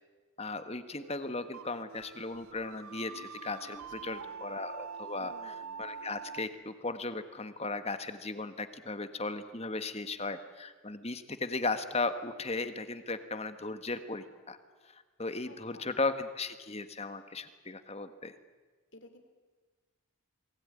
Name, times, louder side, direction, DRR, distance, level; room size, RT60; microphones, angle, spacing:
voice 1, 0.4-3.8 4.0-5.3 5.8-14.6 14.9-18.3, left 3 dB, 30° left, 10 dB, 1.5 m, -36 dB
sound 1, 1.0-6.5, right 6 dB, 85° right, 0.8 m, -45 dB
voice 2, 3.7-4.4 5.2-5.7 15.5-16.0 18.9-19.2, left 2 dB, 55° left, 7 dB, 3.6 m, -55 dB
28.5 x 21.0 x 9.8 m, 1.4 s
head